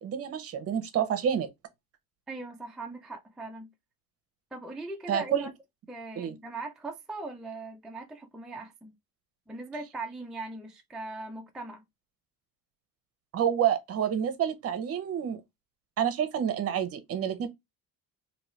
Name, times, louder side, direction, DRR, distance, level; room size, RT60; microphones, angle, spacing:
voice 1, 0.0-1.5 5.1-5.5 6.2-6.3 13.3-15.4 16.0-17.5, right 9 dB, 40° right, 0.8 m, -28 dB
voice 2, 2.3-3.7 4.5-5.5 5.9-8.9 9.5-11.8, right 3 dB, ahead, 0.3 m, -40 dB
3.0 x 2.7 x 3.1 m
cardioid pair, 135°, 35 cm